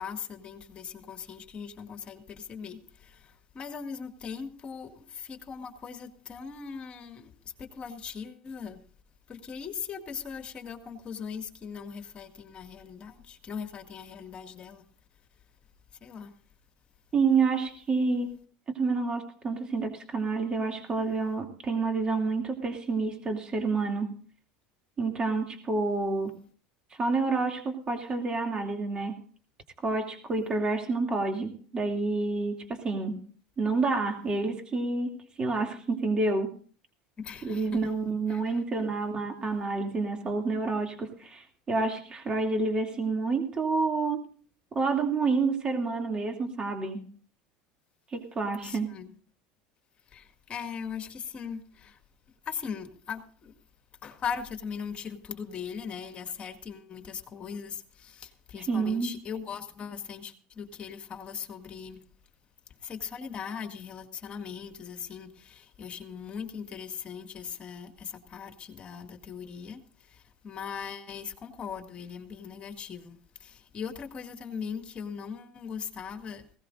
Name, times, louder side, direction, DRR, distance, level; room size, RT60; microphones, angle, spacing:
voice 1, 0.0-8.8 9.3-14.9 16.0-16.3 37.2-37.9 38.3-38.8 48.6-49.2 50.1-52.0 52.5-53.5 54.0-62.0 62.8-76.5, left 6 dB, 35° left, 6 dB, 2.0 m, -40 dB
voice 2, 17.1-18.3 18.7-24.1 25.0-26.3 27.0-29.2 29.8-33.2 33.6-35.1 35.4-36.5 37.4-44.3 44.7-47.0 48.1-48.9 58.7-59.1, right 3 dB, 30° right, 3 dB, 2.7 m, -28 dB
19.5 x 17.0 x 2.6 m, 0.44 s
supercardioid pair, 110°, 3 cm